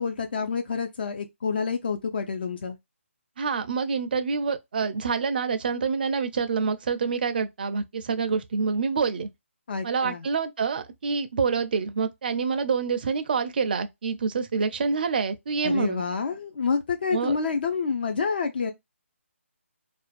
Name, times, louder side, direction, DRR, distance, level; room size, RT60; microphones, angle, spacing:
voice 1, 0.0-2.8 9.7-10.2 15.6-18.7, left 5 dB, 45° left, 0.4 m, -28 dB
voice 2, 3.4-9.3 9.8-16.0 17.1-17.4, right 5 dB, 40° right, 0.4 m, -27 dB
2.4 x 2.2 x 2.3 m
hypercardioid pair, 160°, 7 cm